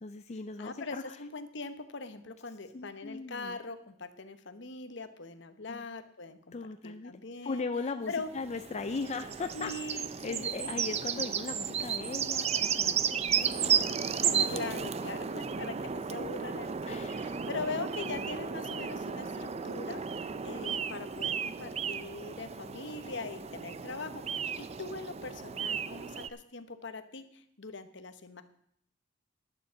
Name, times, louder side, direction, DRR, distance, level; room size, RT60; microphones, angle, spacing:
voice 1, 0.0-1.2 2.7-3.6 5.7-5.8 6.5-7.1 7.4-9.7 10.2-13.7 14.2-14.5 16.9-17.4 18.1-18.2, left 4 dB, 35° left, 8 dB, 0.5 m, -38 dB
voice 2, 0.6-7.7 8.1-8.3 9.5-10.7 14.5-20.0 20.4-28.4, left 3 dB, 65° left, 10 dB, 1.1 m, -41 dB
sound 1, 8.1-26.3, right 7 dB, 35° right, 0.5 m, -33 dB
11.0 x 7.3 x 7.4 m, 0.68 s
head